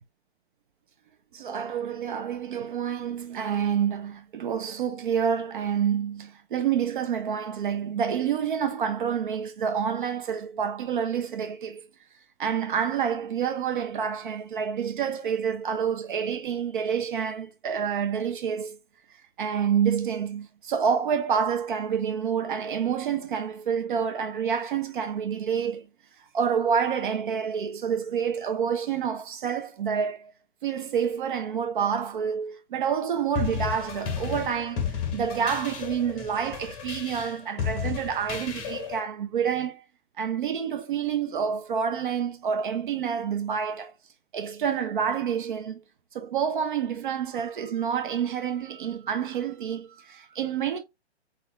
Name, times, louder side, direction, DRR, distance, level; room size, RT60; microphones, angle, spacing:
voice 1, 1.3-11.8 12.4-18.8 19.4-25.9 26.3-30.3 30.6-39.8 40.2-43.9 44.3-45.8 46.1-50.8, right 7 dB, 45° right, 1.0 m, -28 dB
sound 1, 33.4-39.0, left 8 dB, 15° left, 0.9 m, -33 dB
4.1 x 4.0 x 3.1 m
figure-of-eight pair, 125°, 34 cm